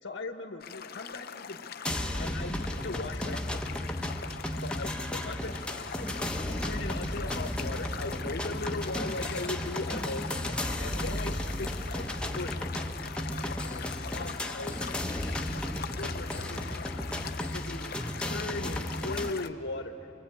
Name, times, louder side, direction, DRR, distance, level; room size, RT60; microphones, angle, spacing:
voice 1, 0.0-1.7 2.2-3.6 4.6-12.1 12.3-12.5 13.4-16.6 17.1-17.9 18.3-20.1, left 2 dB, 80° left, 4 dB, 1.4 m, -39 dB
sound 1, 0.6-19.5, left 7 dB, 55° left, 0.7 m, -42 dB
sound 2, 1.8-19.3, left 1 dB, 5° left, 0.9 m, -34 dB
29.0 x 23.5 x 8.7 m, 2.9 s
head